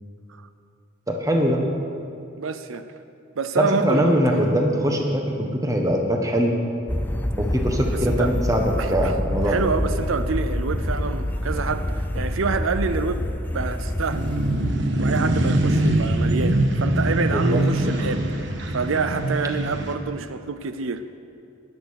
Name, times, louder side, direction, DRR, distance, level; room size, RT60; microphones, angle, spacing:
voice 1, 1.1-1.6 3.6-6.5 7.4-8.6 8.9-9.6 17.2-17.6, equal, 15° right, 2 dB, 1.4 m, -22 dB
voice 2, 2.4-2.8 3.4-4.4 7.9-8.4 8.8-9.1 9.5-13.3 13.5-14.3 15.0-18.3 18.7-21.1, right 4 dB, 85° right, 11 dB, 0.6 m, -27 dB
sound 1, 6.9-14.8, left 1 dB, 10° left, 0.5 m, -26 dB
sound 2, 14.1-19.9, right 1 dB, 65° right, 1.3 m, -23 dB
15.0 x 10.5 x 6.5 m, 2.6 s
head